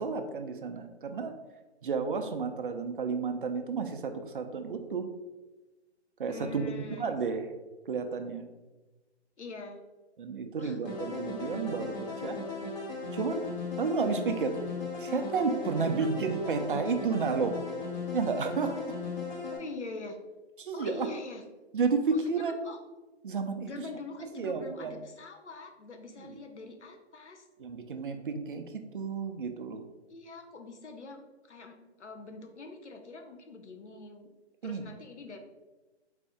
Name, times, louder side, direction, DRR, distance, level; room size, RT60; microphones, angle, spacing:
voice 1, 0.0-1.3 1.8-5.1 6.2-7.5 7.9-8.5 10.2-12.4 13.1-13.5 13.8-14.6 15.0-17.6 18.1-19.0 20.6-21.1 21.7-22.6 23.2-23.7 24.4-24.9 26.2-26.4 27.6-29.8 34.6-34.8, right 5 dB, 50° right, 7 dB, 0.4 m, -31 dB
voice 2, 6.3-7.1 9.4-9.8 10.5-10.8 15.9-16.1 19.5-20.2 20.7-21.4 22.1-22.8 23.6-27.5 30.1-31.2 31.5-34.3 34.6-35.4, left 3 dB, 85° left, 5 dB, 0.8 m, -44 dB
sound 1, 10.8-19.6, left 3 dB, 40° left, 1.1 m, -37 dB
4.1 x 2.6 x 3.5 m, 1.1 s
hypercardioid pair, 150°, 34 cm